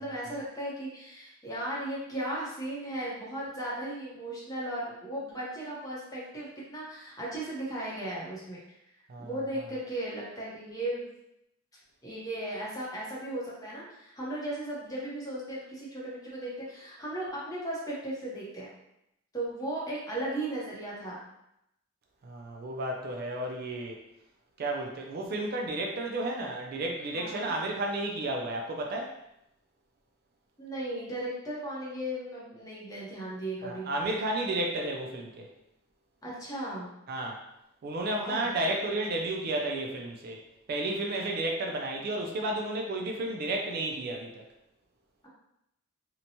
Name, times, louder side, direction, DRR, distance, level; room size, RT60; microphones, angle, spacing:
voice 1, 0.0-8.6 9.2-11.1 12.0-18.7 19.3-21.2 27.1-27.5 30.6-33.9 36.2-36.9 38.0-38.5, right 1 dB, 20° left, -6 dB, 0.7 m, -36 dB
voice 2, 22.2-24.0 24.6-29.2 33.6-35.5 37.1-37.4 37.8-40.4 40.7-44.4, right 2 dB, 50° right, 1 dB, 0.3 m, -32 dB
2.8 x 2.1 x 2.7 m, 0.82 s
head